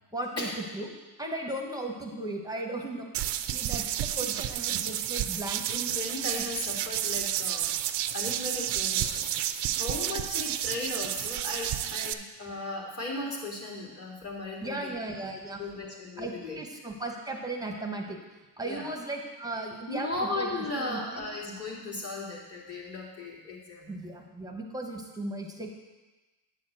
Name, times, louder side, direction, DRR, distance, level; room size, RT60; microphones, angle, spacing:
voice 1, 0.1-0.9 1.2-5.6 14.6-15.6 16.2-18.2 18.6-21.3 23.9-25.7, right 2 dB, 10° right, 1 dB, 1.0 m, -36 dB
sound 1, 3.1-12.1, right 11 dB, 60° right, 0.5 m, -31 dB
voice 2, 5.7-7.7 8.1-14.9 15.6-16.6 18.6-18.9 19.9-24.0, left 2 dB, 30° left, -4 dB, 2.4 m, -36 dB
9.4 x 4.3 x 7.4 m, 1.2 s
cardioid pair, 140°, 46 cm